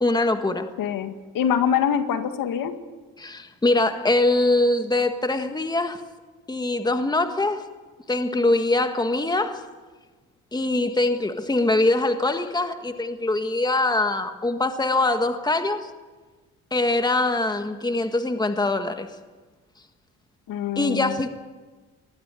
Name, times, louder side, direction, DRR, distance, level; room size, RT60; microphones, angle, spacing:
voice 1, 0.0-0.7 3.2-6.0 6.5-7.6 8.1-9.6 10.5-15.9 16.7-19.1 20.8-21.3, left 2 dB, 10° left, 7 dB, 1.6 m, -23 dB
voice 2, 0.8-2.7 20.5-21.2, left 8 dB, 75° left, 8 dB, 1.9 m, -24 dB
20.5 x 14.0 x 9.6 m, 1.3 s
cardioid pair, 100°, 34 cm